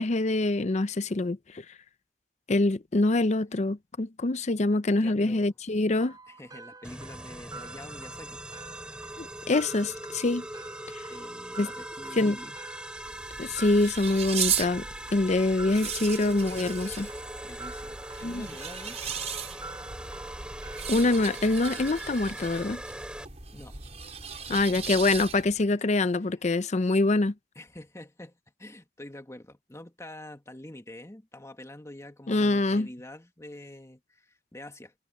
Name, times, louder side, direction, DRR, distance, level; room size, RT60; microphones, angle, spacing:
voice 1, 0.0-1.6 2.5-6.2 9.2-10.4 11.6-11.7 12.2-12.4 13.4-14.8 15.1-17.1 18.2-18.5 20.9-22.8 24.5-27.3 32.3-32.9, left 2 dB, 40° left, 0.6 m, -25 dB
voice 2, 4.9-5.5 6.3-8.4 11.1-12.5 17.4-19.2 23.5-23.8 24.3-24.8 25.6-25.8 27.6-34.9, left 1 dB, 15° left, 1.9 m, -46 dB
sound 1, 6.0-22.1, right 4 dB, 20° right, 5.2 m, -47 dB
sound 2, 6.8-23.2, right 1 dB, 5° right, 3.6 m, -41 dB
sound 3, 12.9-25.6, right 7 dB, 40° right, 3.4 m, -37 dB
head